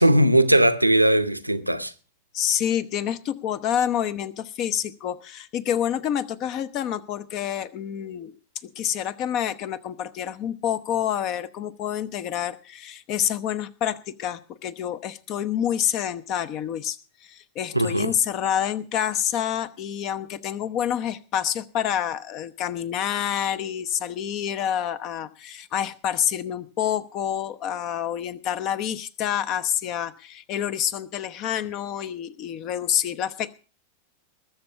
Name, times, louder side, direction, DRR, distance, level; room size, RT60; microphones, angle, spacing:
voice 1, 0.0-1.9 17.7-18.1, right 1 dB, 90° right, 0.8 m, -19 dB
voice 2, 2.3-8.3 8.6-33.5, left 10 dB, 40° left, 0.8 m, -28 dB
20.5 x 7.1 x 5.6 m
figure-of-eight pair, 90°, 0 cm